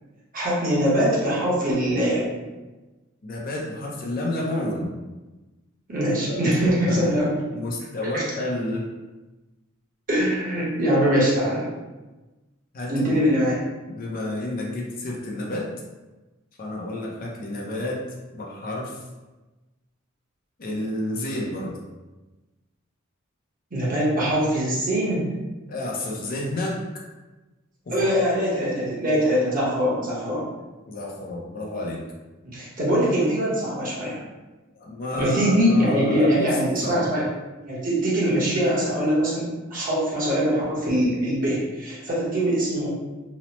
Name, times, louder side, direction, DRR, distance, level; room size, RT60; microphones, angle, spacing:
voice 1, 0.3-2.4 5.9-7.4 8.1-8.2 10.1-11.7 12.9-13.5 23.7-25.3 27.9-30.4 32.5-34.2 35.2-37.2 37.6-42.9, equal, 45° right, -7 dB, 0.9 m, -22 dB
voice 2, 3.2-5.0 6.2-7.1 7.5-8.8 12.7-13.3 13.9-15.7 16.6-18.0 18.3-19.0 20.6-21.8 25.7-26.8 27.8-28.1 30.9-32.0 34.7-36.5 36.8-37.1, left 1 dB, 45° left, -2 dB, 0.5 m, -30 dB
3.0 x 2.0 x 2.9 m, 1.2 s
head